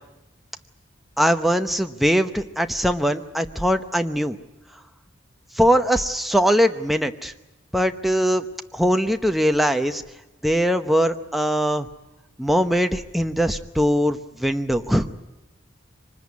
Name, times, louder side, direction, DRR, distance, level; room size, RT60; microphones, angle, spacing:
voice 1, 1.2-4.4 5.5-7.3 7.7-8.4 8.7-10.0 10.4-11.9 12.4-15.1, equal, ahead, 6 dB, 0.8 m, -21 dB
24.0 x 20.0 x 9.5 m, 1.0 s
head